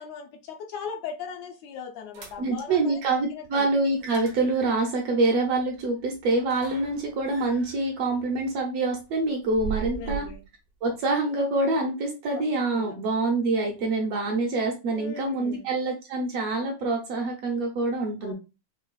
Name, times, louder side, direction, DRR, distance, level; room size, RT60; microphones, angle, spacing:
voice 1, 0.0-3.7 9.7-10.4 12.3-12.4 12.7-13.0 14.9-15.7 18.2-18.3, left 6 dB, 75° left, 1.7 m, -39 dB
sound 1, 2.1-2.7 3.8-10.5, right 6 dB, 85° right, 0.8 m, -40 dB
voice 2, 2.4-10.3 10.8-18.3, right 3 dB, 65° right, 1.7 m, -26 dB
5.5 x 2.9 x 2.3 m
omnidirectional pair, 3.3 m